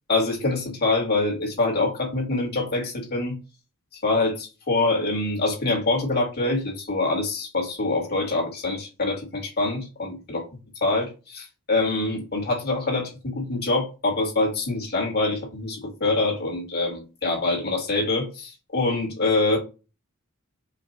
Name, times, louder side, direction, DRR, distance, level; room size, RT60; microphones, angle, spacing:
voice 1, 0.1-3.3 4.0-10.4 10.8-19.6, left 2 dB, 45° left, 2.0 m, -25 dB
5.1 x 2.5 x 4.1 m
head